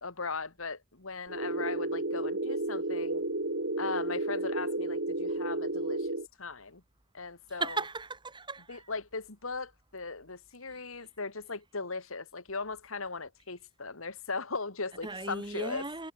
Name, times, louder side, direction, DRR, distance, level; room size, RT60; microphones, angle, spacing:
voice 1, 0.0-3.2 3.8-6.8 7.1-7.9 8.7-15.9, left 4 dB, 75° left, 2.6 m, -38 dB
sound 1, 1.3-6.3, right 2 dB, 65° right, 3.8 m, -32 dB
voice 2, 7.6-8.8 15.0-16.1, right 3 dB, 25° right, 3.5 m, -36 dB
head